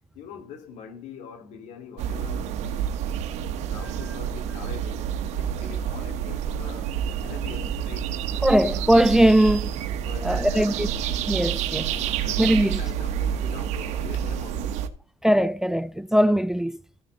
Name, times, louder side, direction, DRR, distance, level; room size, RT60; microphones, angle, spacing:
voice 1, 0.1-3.0 3.5-5.1 5.4-8.2 10.0-11.0 11.8-14.9, left 7 dB, 80° left, 2.6 m, -43 dB
sound 1, 2.0-14.9, right 9 dB, 80° right, 1.2 m, -28 dB
voice 2, 8.4-9.7 10.2-10.9 11.3-11.9 12.4-12.8 15.2-16.8, right 1 dB, 5° right, 0.4 m, -20 dB
14.0 x 6.4 x 4.0 m
cardioid pair, 105°, 12 cm